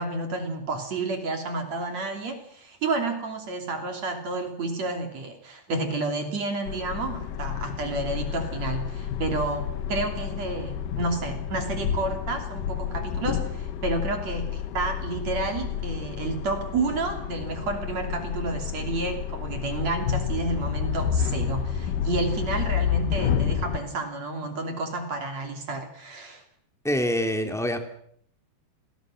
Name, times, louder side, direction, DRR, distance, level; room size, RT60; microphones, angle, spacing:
voice 1, 0.0-26.4, right 3 dB, 40° right, 5 dB, 3.6 m, -30 dB
sound 1, 6.7-23.8, left 8 dB, 65° left, 2.3 m, -30 dB
voice 2, 26.8-27.8, equal, ahead, 6 dB, 1.1 m, -25 dB
29.0 x 22.0 x 6.4 m, 0.69 s
omnidirectional pair, 5.1 m